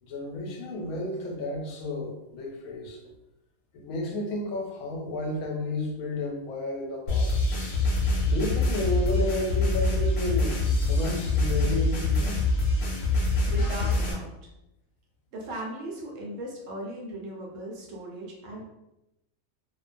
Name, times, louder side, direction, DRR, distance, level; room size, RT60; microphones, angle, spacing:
voice 1, 0.1-3.0 3.7-7.4 8.3-10.6 10.9-12.4, left 1 dB, 85° left, 1 dB, 1.0 m, -32 dB
sound 1, 7.1-14.1, left 2 dB, 60° left, 0.8 m, -25 dB
voice 2, 13.4-14.3 15.3-18.7, right 1 dB, 70° right, -2 dB, 1.0 m, -37 dB
2.4 x 2.1 x 2.5 m, 0.89 s
omnidirectional pair, 1.5 m